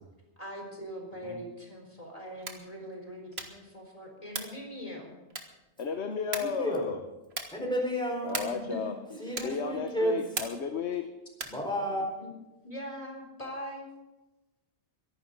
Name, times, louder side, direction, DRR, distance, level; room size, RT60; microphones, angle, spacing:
voice 1, 0.4-5.1 8.4-9.5 12.2-12.4 12.6-13.8, equal, 30° left, 0 dB, 4.0 m, -42 dB
sound 1, 2.3-2.7 3.3-3.7 4.3-4.7 5.3-5.7 6.3-6.7 7.3-7.7 8.3-8.7 9.3-9.7 10.3-10.7 11.3-11.7, right 3 dB, 65° right, 1.8 m, -38 dB
voice 2, 5.8-7.0 8.2-8.9 9.4-11.1, left 6 dB, 75° left, 6 dB, 1.3 m, -33 dB
voice 3, 6.3-6.9 7.5-8.5 9.2-10.2 11.5-12.0, equal, 5° left, -1 dB, 4.5 m, -32 dB
23.5 x 11.5 x 3.9 m, 1.0 s
omnidirectional pair, 1.1 m